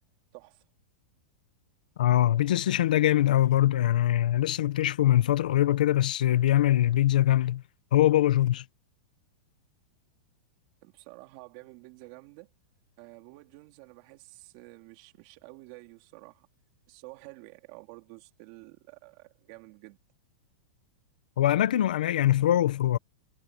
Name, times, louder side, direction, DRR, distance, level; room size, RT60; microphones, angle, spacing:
voice 1, 0.3-0.6 10.8-12.5 13.0-16.5 16.9-20.0, right 24 dB, 40° right, 3.5 m, -50 dB
voice 2, 2.0-7.6 7.9-8.6 21.4-23.0, left 13 dB, 80° left, 1.0 m, -23 dB
supercardioid pair, 175°, 4 cm